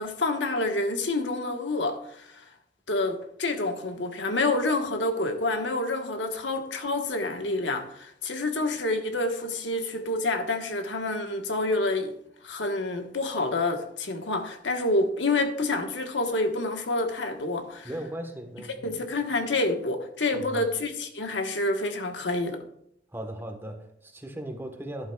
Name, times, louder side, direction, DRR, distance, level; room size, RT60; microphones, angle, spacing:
voice 1, 0.0-2.4 2.9-12.1 12.4-17.9 18.8-22.6, left 2 dB, 80° left, 1.3 m, -28 dB
voice 2, 17.8-18.9 20.3-20.7 23.1-25.1, right 1 dB, 10° right, 1.3 m, -38 dB
12.5 x 11.0 x 2.3 m
head